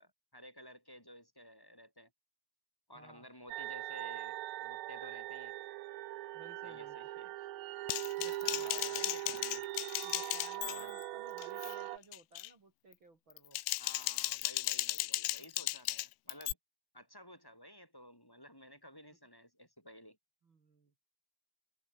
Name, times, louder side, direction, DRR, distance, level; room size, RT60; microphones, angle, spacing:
voice 1, 0.0-2.1 2.9-5.5 6.6-7.3 8.2-9.6 10.6-10.9 13.8-16.6 16.9-20.2, equal, 5° left, 7.7 m, -54 dB
voice 2, 2.9-3.3 6.3-7.0 8.2-9.4 10.0-13.6 15.4-15.7 20.4-20.9, right 2 dB, 35° right, 2.7 m, -57 dB
sound 1, 3.5-12.0, right 17 dB, 80° right, 3.2 m, -41 dB
Typing, 7.9-11.1 11.4-11.8 12.1-12.5 13.3-16.5, left 20 dB, 85° left, 2.9 m, -36 dB
omnidirectional pair, 5.2 m